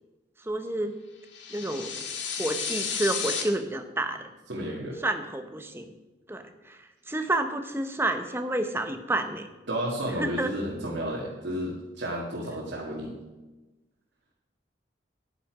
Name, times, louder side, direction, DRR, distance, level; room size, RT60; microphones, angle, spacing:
voice 1, 0.5-0.9 1.5-2.0 2.4-4.3 5.0-5.9 6.3-6.8 7.1-9.5 10.2-10.5, right 1 dB, 15° right, 7 dB, 0.8 m, -29 dB
sound 1, 1.3-3.4, left 6 dB, 80° left, 1.6 m, -32 dB
voice 2, 4.5-5.0 9.7-13.1, equal, 75° right, -4 dB, 2.2 m, -32 dB
10.0 x 9.9 x 4.9 m, 1.1 s
head